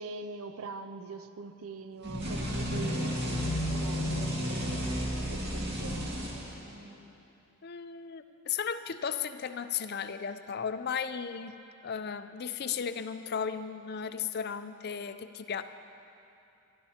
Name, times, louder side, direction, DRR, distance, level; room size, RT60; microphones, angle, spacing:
voice 1, 0.0-4.9 5.3-6.2, right 4 dB, 75° right, 10 dB, 0.6 m, -43 dB
sound 1, 2.0-6.9, equal, 50° right, 2.2 m, -32 dB
voice 2, 7.6-11.6 11.8-15.6, left 7 dB, 50° left, 10 dB, 0.5 m, -35 dB
24.0 x 12.5 x 2.9 m, 2.7 s
head